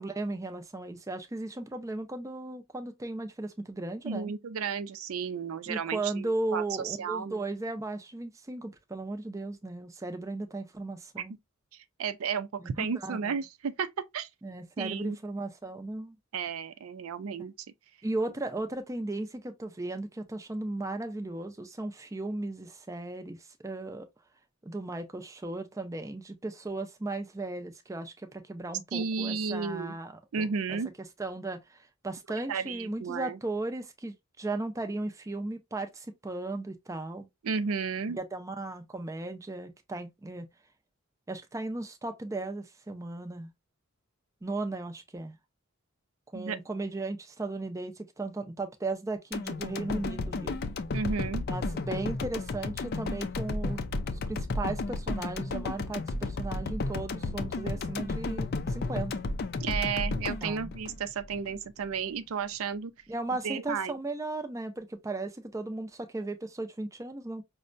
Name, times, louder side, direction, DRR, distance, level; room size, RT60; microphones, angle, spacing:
voice 1, 0.0-4.3 5.7-11.3 12.6-13.4 14.4-16.2 18.0-23.4 23.6-24.1 24.6-30.8 31.2-31.8 32.0-37.3 38.1-40.5 41.3-43.5 44.4-45.4 46.3-50.6 51.4-53.8 54.3-59.1 60.4-60.7 63.1-67.4, right 2 dB, 15° right, 0.5 m, -36 dB
voice 2, 4.0-7.4 11.2-11.3 12.0-14.3 14.8-15.2 16.3-17.5 28.9-29.9 30.3-30.9 32.5-33.4 37.4-38.2 46.3-46.6 50.9-51.4 59.6-62.9 63.4-64.0, right 6 dB, 85° right, 0.4 m, -33 dB
sound 1, 49.3-61.5 61.9-62.0, left 3 dB, 45° left, 0.4 m, -33 dB
5.3 x 2.1 x 2.5 m
head